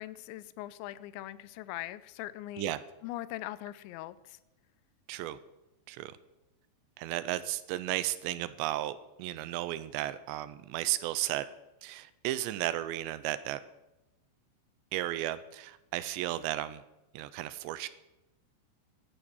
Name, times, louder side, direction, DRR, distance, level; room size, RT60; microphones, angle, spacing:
voice 1, 0.0-2.7 3.0-4.4, left 15 dB, 85° left, 17 dB, 2.9 m, -41 dB
voice 2, 7.0-11.5 11.8-13.6 14.9-16.8 17.1-17.9, right 14 dB, 80° right, 15 dB, 2.8 m, -34 dB
14.0 x 11.5 x 7.2 m, 0.97 s
omnidirectional pair, 5.3 m